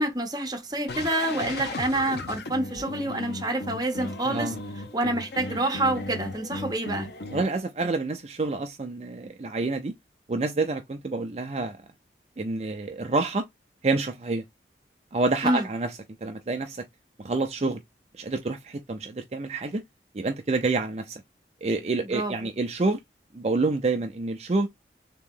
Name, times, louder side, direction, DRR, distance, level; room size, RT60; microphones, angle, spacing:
voice 1, 0.0-4.5 4.9-7.1 15.4-15.7 22.0-22.4, right 1 dB, 20° right, 1.0 m, -27 dB
sound 1, 0.9-7.4, left 2 dB, 70° left, 0.7 m, -36 dB
voice 2, 4.2-4.6 7.3-9.9 10.3-11.8 12.4-13.5 13.8-14.4 15.1-15.9 16.2-16.8 17.2-17.8 18.2-19.8 20.1-21.2 21.6-23.0 23.3-24.7, right 3 dB, 35° right, 0.4 m, -28 dB
3.6 x 2.9 x 3.6 m
head